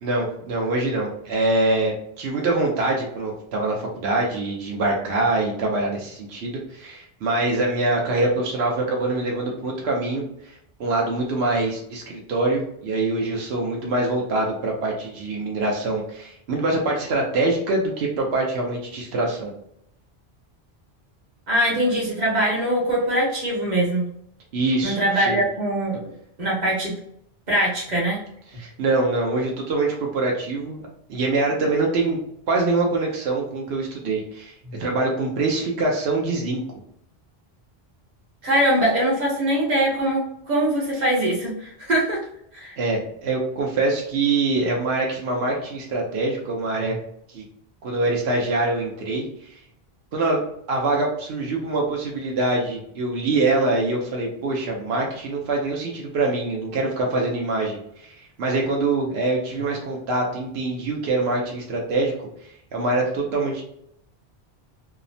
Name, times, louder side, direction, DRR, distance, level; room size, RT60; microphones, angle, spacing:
voice 1, 0.0-10.5 10.8-19.5 24.5-25.4 28.6-30.8 31.1-32.2 32.5-34.5 34.8-36.6 42.8-47.0 47.3-47.4 47.8-49.5 50.1-50.4 50.7-58.1 58.4-62.3 62.7-63.6, right 2 dB, 90° right, -1 dB, 0.9 m, -24 dB
voice 2, 21.5-24.0 24.8-26.0 26.4-26.9 27.5-28.2 34.6-34.8 38.4-42.2 42.5-42.7 46.8-46.9, right 1 dB, 45° right, -4 dB, 1.1 m, -22 dB
2.8 x 2.1 x 2.6 m, 0.72 s
omnidirectional pair, 1.0 m